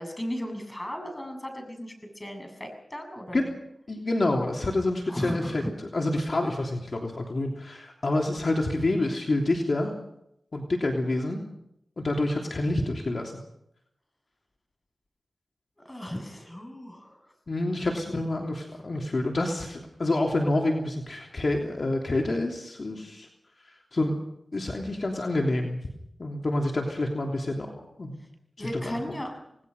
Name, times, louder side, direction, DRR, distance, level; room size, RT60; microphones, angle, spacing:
voice 1, 0.0-3.4 5.1-5.7 15.8-17.2 17.7-17.8 28.6-29.3, equal, 20° left, 5 dB, 7.3 m, -35 dB
voice 2, 3.9-5.6 5.9-9.9 10.5-11.4 12.0-13.4 17.5-23.3 23.9-24.2 24.5-25.8 26.2-28.2 28.6-29.0, left 2 dB, 55° left, 1 dB, 3.2 m, -27 dB
28.0 x 19.5 x 5.5 m, 0.78 s
cardioid pair, 55°, 0 cm